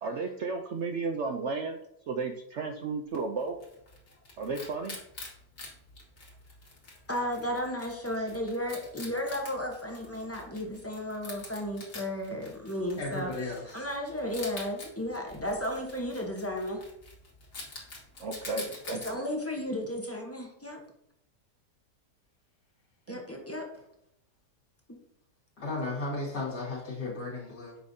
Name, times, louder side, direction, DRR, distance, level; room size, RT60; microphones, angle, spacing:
voice 1, 0.0-1.8 2.1-3.6 4.4-5.0 18.2-19.2 23.1-23.4, right 4 dB, 75° right, 4 dB, 0.6 m, -34 dB
Wild animals, 3.1-19.1, left 3 dB, 50° left, 1.8 m, -47 dB
voice 2, 7.1-13.3 13.7-16.8 18.9-20.8 23.1-23.6, left 1 dB, 15° left, 1 dB, 0.5 m, -34 dB
voice 3, 13.0-13.9 23.7-23.8 25.6-27.8, left 2 dB, 70° left, -6 dB, 2.3 m, -35 dB
7.7 x 5.0 x 2.7 m, 0.78 s
omnidirectional pair, 1.8 m